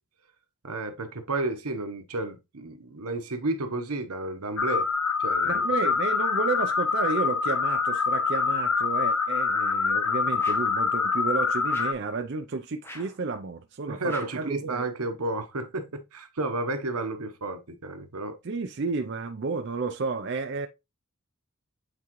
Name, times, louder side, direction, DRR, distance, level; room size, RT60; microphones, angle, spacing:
voice 1, 0.6-4.9 5.2-5.6 13.9-18.4, right 2 dB, 85° right, 1.1 m, -32 dB
sound 1, 4.6-11.9, left 5 dB, 90° left, 1.1 m, -25 dB
voice 2, 5.4-14.9 18.4-20.7, right 4 dB, 50° right, 0.5 m, -31 dB
sound 2, 10.4-10.8 11.7-12.1 12.8-13.2 14.1-14.5, left 1 dB, 10° left, 0.8 m, -45 dB
8.2 x 3.7 x 3.1 m
head